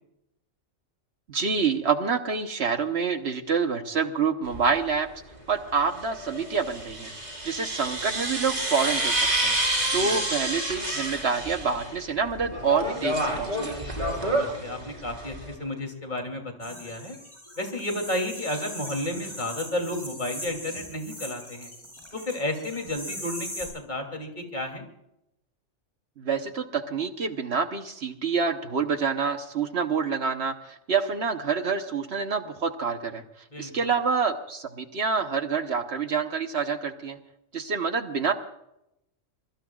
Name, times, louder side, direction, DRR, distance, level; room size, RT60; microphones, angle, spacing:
voice 1, 1.3-5.1 5.5-7.1 7.4-9.6 9.9-13.8 26.2-33.2 33.6-37.2 37.5-38.3, right 5 dB, 60° right, 8 dB, 1.2 m, -27 dB
sound 1, 4.5-4.6 6.0-12.0 12.3-15.5, right 1 dB, 35° right, 4.3 m, -29 dB
voice 2, 9.8-10.2 14.2-17.2 17.6-21.7 22.1-24.9 33.5-33.9, left 1 dB, 35° left, 3 dB, 3.1 m, -32 dB
sound 2, 16.6-23.7, left 1 dB, 20° left, 8.1 m, -40 dB
25.0 x 22.5 x 2.4 m, 0.83 s
omnidirectional pair, 1.3 m